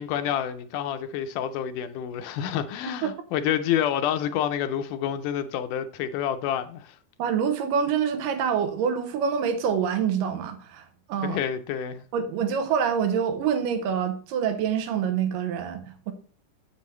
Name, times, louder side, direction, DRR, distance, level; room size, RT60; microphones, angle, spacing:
voice 1, 0.0-7.0 11.2-12.0, left 9 dB, 80° left, 2.1 m, -28 dB
voice 2, 7.2-11.4 12.1-16.1, right 7 dB, 80° right, 2.5 m, -26 dB
7.6 x 7.2 x 3.1 m
omnidirectional pair, 3.8 m